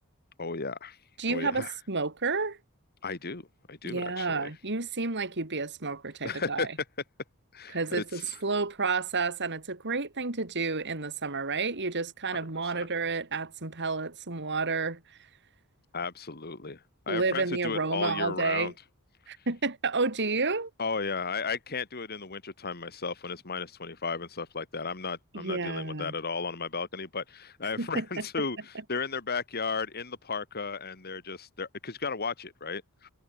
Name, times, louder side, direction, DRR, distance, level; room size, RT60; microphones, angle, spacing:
voice 1, 0.4-1.0 1.3-1.7 3.0-4.5 6.2-6.7 7.5-8.4 12.7-12.9 15.9-18.7 20.8-33.1, left 4 dB, 45° left, 2.3 m, -34 dB
voice 2, 1.2-2.6 3.8-6.7 7.7-15.0 17.1-18.7 19.3-20.7 25.3-26.1 27.8-28.2, right 4 dB, 50° right, 2.8 m, -30 dB
head